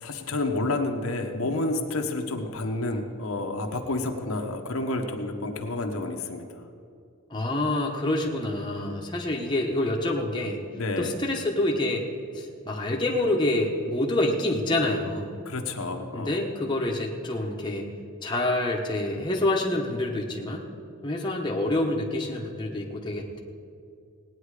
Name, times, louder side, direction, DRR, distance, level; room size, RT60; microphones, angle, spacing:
voice 1, 0.0-6.4 10.8-11.1 15.4-16.4, left 2 dB, 70° left, 3 dB, 1.1 m, -29 dB
voice 2, 7.3-10.6 11.0-12.0 12.3-15.3 16.1-17.9 18.2-20.6 21.0-23.4, left 1 dB, 20° left, -1 dB, 1.0 m, -27 dB
18.0 x 9.4 x 4.9 m, 2.4 s
head